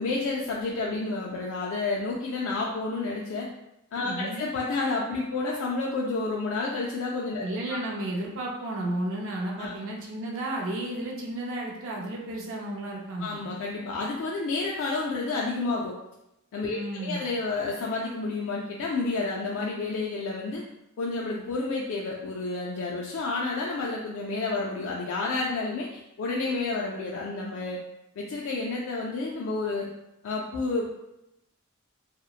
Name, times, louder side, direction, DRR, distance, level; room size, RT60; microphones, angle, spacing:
voice 1, 0.0-3.5 3.9-7.8 9.6-9.8 13.2-15.9 16.5-20.6 21.0-27.8 28.2-29.9 30.2-30.9, left 3 dB, 65° left, -3 dB, 0.3 m, -30 dB
voice 2, 4.0-4.5 7.4-13.4 16.7-17.2, right 1 dB, 60° right, -2 dB, 0.5 m, -33 dB
2.8 x 2.0 x 2.3 m, 0.87 s
head